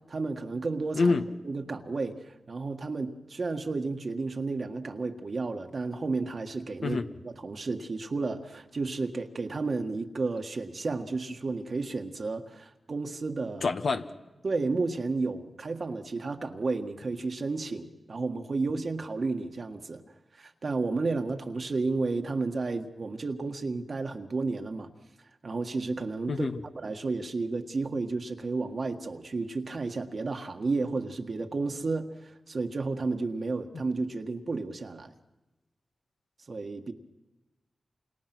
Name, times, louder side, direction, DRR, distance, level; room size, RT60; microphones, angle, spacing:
voice 1, 0.1-1.1 1.4-7.0 7.2-13.7 14.4-20.0 20.4-24.9 25.4-26.5 26.7-35.1 36.5-36.9, right 3 dB, 55° right, 6 dB, 1.7 m, -32 dB
voice 2, 13.6-14.1 26.3-26.6, left 4 dB, 70° left, 7 dB, 1.4 m, -26 dB
28.0 x 27.0 x 6.2 m, 1.1 s
cardioid pair, 75°, 0 cm